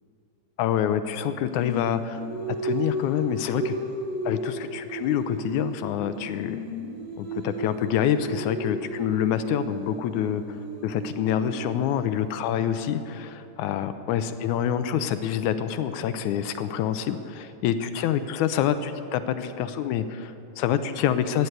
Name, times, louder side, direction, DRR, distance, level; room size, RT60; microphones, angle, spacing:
voice 1, 0.6-2.2 2.6-3.8 4.3-6.6 7.2-10.4 10.8-21.5, left 9 dB, 80° left, 11 dB, 1.9 m, -26 dB
Singing, 1.5-5.9 6.1-12.1, right 1 dB, 50° right, 3.3 m, -34 dB
15.5 x 10.0 x 8.1 m, 2.7 s
omnidirectional pair, 3.8 m